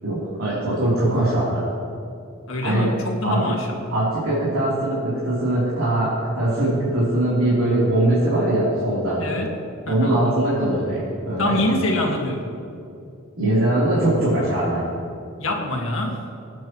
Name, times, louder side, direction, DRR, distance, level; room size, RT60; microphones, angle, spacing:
voice 1, 0.0-1.7 2.6-2.9 3.2-3.4 3.9-9.2 9.9-11.6 13.4-14.9, right 1 dB, 85° right, -9 dB, 3.5 m, -21 dB
voice 2, 2.5-3.8 9.2-9.5 9.9-10.2 11.4-12.5 15.4-16.3, left 1 dB, 70° left, 1 dB, 1.9 m, -25 dB
26.5 x 9.2 x 3.1 m, 2.6 s
head